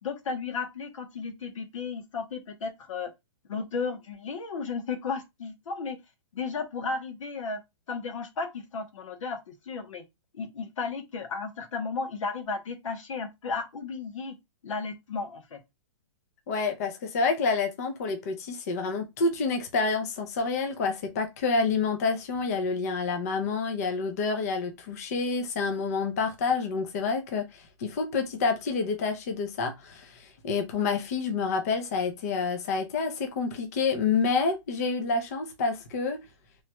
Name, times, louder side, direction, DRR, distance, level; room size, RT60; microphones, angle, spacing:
voice 1, 0.0-3.1 3.5-6.0 6.3-7.6 7.9-10.0 10.3-14.4 14.6-15.6, left 4 dB, 85° left, 1.0 m, -34 dB
voice 2, 16.5-36.2, left 4 dB, 30° left, 0.5 m, -28 dB
3.1 x 2.3 x 2.9 m
hypercardioid pair, 175°, 16 cm